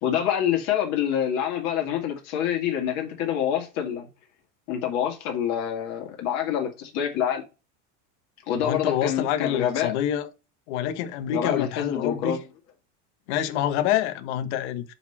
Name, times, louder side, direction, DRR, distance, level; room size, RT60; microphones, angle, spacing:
voice 1, 0.0-4.1 4.7-7.4 8.5-9.9 11.3-12.4, left 9 dB, 45° left, 2.1 m, -26 dB
voice 2, 8.6-10.3 10.7-12.4 13.3-14.9, left 10 dB, 65° left, 1.3 m, -27 dB
6.9 x 4.3 x 4.2 m
cardioid pair, 170°, 36 cm